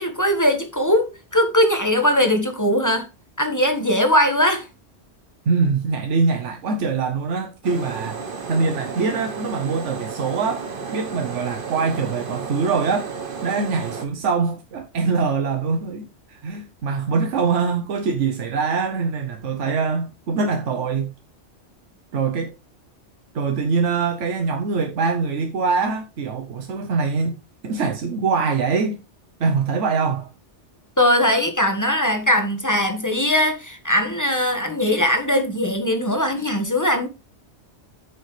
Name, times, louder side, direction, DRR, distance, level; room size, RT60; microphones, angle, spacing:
voice 1, 0.0-3.1 3.4-4.7 31.0-37.1, left 1 dB, 15° left, 1.5 m, -20 dB
voice 2, 5.5-13.1 13.4-21.1 22.1-22.5 23.3-29.0 29.4-30.3, right 4 dB, 90° right, 1.3 m, -23 dB
sound 1, 7.6-14.0, right 5 dB, 50° right, 1.3 m, -33 dB
9.0 x 6.8 x 3.3 m
omnidirectional pair, 1.2 m